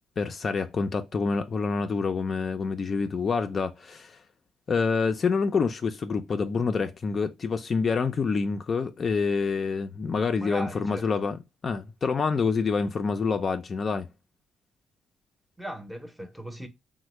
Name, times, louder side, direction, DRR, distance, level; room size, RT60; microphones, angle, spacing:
voice 1, 0.2-4.2 4.7-14.1, left 5 dB, 45° left, 0.4 m, -27 dB
voice 2, 10.4-11.1 15.6-16.7, right 1 dB, 5° right, 0.7 m, -38 dB
3.2 x 2.1 x 3.0 m
cardioid pair, 90°, 0 cm